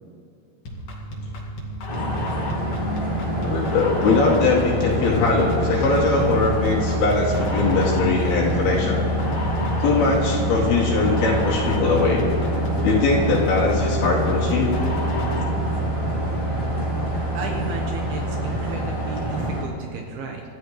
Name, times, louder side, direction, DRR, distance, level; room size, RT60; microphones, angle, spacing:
sound 1, 0.7-15.6, left 1 dB, 50° left, 2.9 m, -31 dB
sound 2, 1.9-19.6, right 1 dB, 10° left, 3.5 m, -25 dB
voice 1, 3.4-9.1 9.8-12.2 12.8-14.7, left 3 dB, 75° left, -4 dB, 4.1 m, -21 dB
voice 2, 17.3-20.4, right 4 dB, 75° right, 1 dB, 3.0 m, -34 dB
27.0 x 13.0 x 3.2 m, 2.3 s
omnidirectional pair, 4.7 m